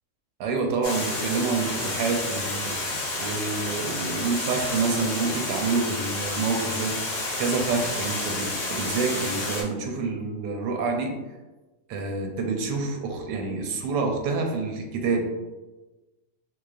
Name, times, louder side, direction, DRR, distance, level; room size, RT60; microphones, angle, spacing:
voice 1, 0.4-2.8 3.2-7.0 7.4-11.1 11.9-15.3, right 4 dB, 90° right, 3 dB, 1.2 m, -27 dB
Water, 0.8-9.6, left 2 dB, 50° left, 0.8 m, -30 dB
3.8 x 2.9 x 2.4 m, 1.1 s
omnidirectional pair, 1.8 m